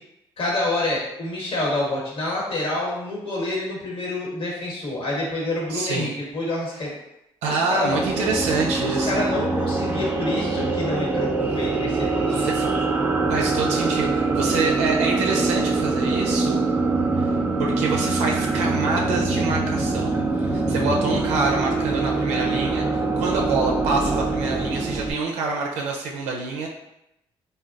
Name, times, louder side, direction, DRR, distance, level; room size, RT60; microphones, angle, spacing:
voice 1, 0.4-6.9 7.4-8.4 8.8-12.5 21.3-21.4, left 2 dB, 60° left, -4 dB, 1.3 m, -27 dB
voice 2, 5.7-6.1 7.4-9.1 12.3-12.7 13.3-16.6 17.2-17.3 17.6-26.7, right 4 dB, 90° right, 0 dB, 0.4 m, -26 dB
sound 1, 7.8-25.1, right 3 dB, 20° right, 0.5 m, -24 dB
3.3 x 2.2 x 2.5 m, 0.85 s
cardioid pair, 80°, 11 cm